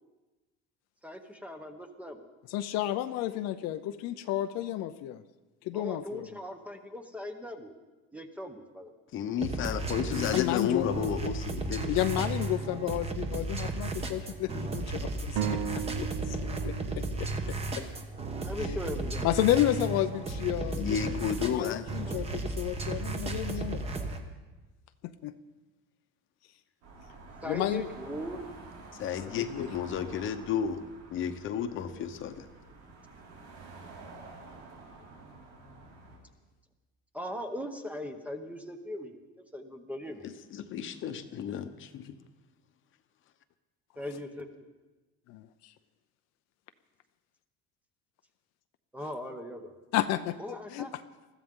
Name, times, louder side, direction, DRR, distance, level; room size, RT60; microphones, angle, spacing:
voice 1, 1.0-2.3 5.7-7.7 8.1-8.9 18.4-19.3 27.4-28.4 37.1-39.2 39.5-40.3 44.0-44.7 48.9-49.8 50.4-50.9, left 1 dB, 5° right, 6 dB, 0.9 m, -39 dB
voice 2, 2.5-5.2 5.6-6.3 10.1-10.9 11.9-16.4 16.6-17.8 18.6-18.8 19.2-21.2 21.5-23.8 25.0-25.3 27.4-27.9 29.3-29.7 45.3-45.7 49.9-51.0, left 13 dB, 60° left, 10 dB, 0.6 m, -32 dB
voice 3, 9.1-11.9 20.8-21.8 29.0-30.8 31.1-32.5 40.2-42.2, left 8 dB, 40° left, 9 dB, 1.0 m, -32 dB
sound 1, 9.4-24.2, right 2 dB, 20° right, 1.2 m, -34 dB
sound 2, 15.4-19.0, right 8 dB, 70° right, 1.0 m, -37 dB
sound 3, 26.8-36.2, right 3 dB, 90° right, 5.0 m, -49 dB
21.0 x 14.5 x 3.8 m, 1.2 s
cardioid pair, 160°, 30 cm